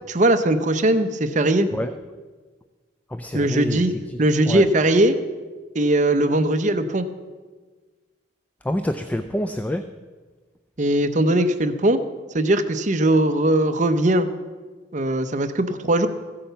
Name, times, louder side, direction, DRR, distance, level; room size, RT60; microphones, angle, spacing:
voice 1, 0.1-1.7 3.3-5.2 5.7-7.0 10.8-12.0 12.3-14.3 14.9-16.1, right 1 dB, 40° right, 10 dB, 0.7 m, -20 dB
voice 2, 3.1-4.2 4.5-4.7 8.6-9.9, left 1 dB, 10° left, 8 dB, 0.3 m, -27 dB
15.0 x 8.7 x 6.8 m, 1.4 s
head